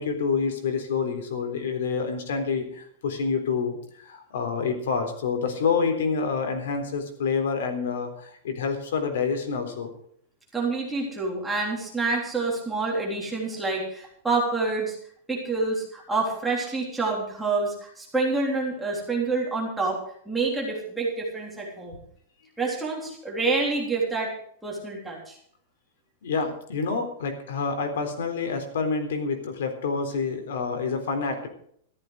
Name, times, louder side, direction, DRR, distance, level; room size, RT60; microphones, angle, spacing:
voice 1, 0.0-9.9 26.2-31.5, left 5 dB, 70° left, 6 dB, 3.8 m, -28 dB
voice 2, 10.5-15.0 15.3-20.0 20.3-22.0 22.6-24.3 24.6-25.4, right 3 dB, 5° right, -3 dB, 3.4 m, -27 dB
14.0 x 13.0 x 5.0 m, 0.63 s
supercardioid pair, 180°, 0 cm